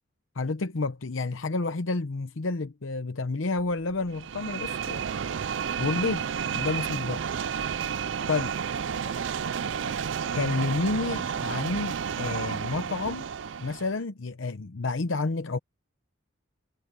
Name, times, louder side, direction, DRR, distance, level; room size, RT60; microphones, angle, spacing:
voice 1, 0.3-5.0 5.8-6.3 6.5-7.2 8.3-8.5 10.3-13.3 13.6-15.6, left 3 dB, 70° left, 0.8 m, -30 dB
sound 1, 3.5-14.0, right 1 dB, 75° right, 2.0 m, -55 dB
sound 2, 4.1-14.0, right 7 dB, 60° right, 0.4 m, -31 dB
voice 2, 8.8-9.3 9.5-11.1, left 2 dB, 35° left, 2.2 m, -53 dB
head